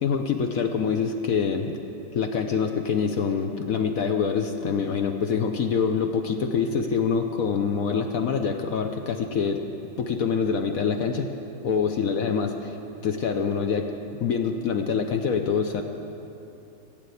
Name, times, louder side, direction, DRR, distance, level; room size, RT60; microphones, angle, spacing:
voice 1, 0.0-1.8 2.1-9.6 10.0-11.3 11.6-12.8 13.0-13.9 14.2-15.8, left 6 dB, 70° left, 5 dB, 0.8 m, -25 dB
15.5 x 7.7 x 8.3 m, 2.8 s
omnidirectional pair, 2.2 m